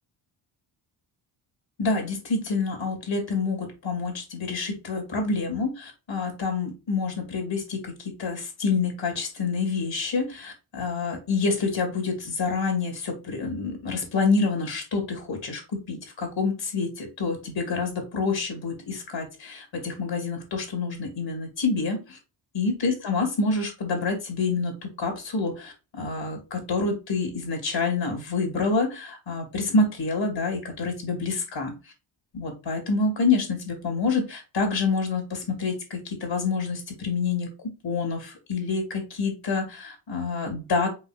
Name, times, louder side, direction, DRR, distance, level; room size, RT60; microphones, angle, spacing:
voice 1, 1.8-15.6 15.9-22.2 22.5-24.7 25.0-31.7 32.3-37.5 37.8-40.9, left 4 dB, 60° left, 3 dB, 2.6 m, -27 dB
5.7 x 3.9 x 2.4 m, 0.29 s
cardioid pair, 85°, 49 cm